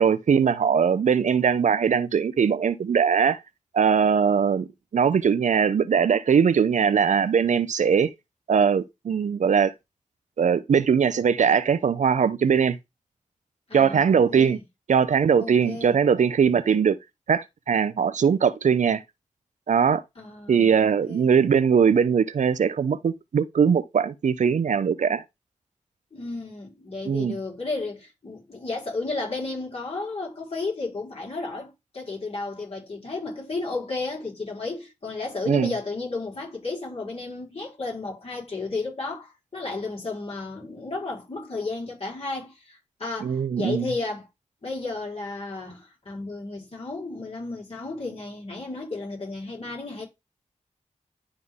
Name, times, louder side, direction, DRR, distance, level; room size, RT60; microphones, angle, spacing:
voice 1, 0.0-3.4 3.7-8.1 8.5-9.7 10.4-12.8 13.7-14.6 14.9-17.0 17.3-19.0 19.7-20.0 20.5-25.2 27.0-27.4 35.5-35.7 43.2-43.9, right 7 dB, 70° right, 0.6 m, -21 dB
voice 2, 13.7-14.6 15.4-15.9 20.2-21.2 26.1-44.3 44.6-50.1, left 3 dB, 50° left, 4.5 m, -33 dB
11.0 x 3.8 x 3.6 m
cardioid pair, 55°, 13 cm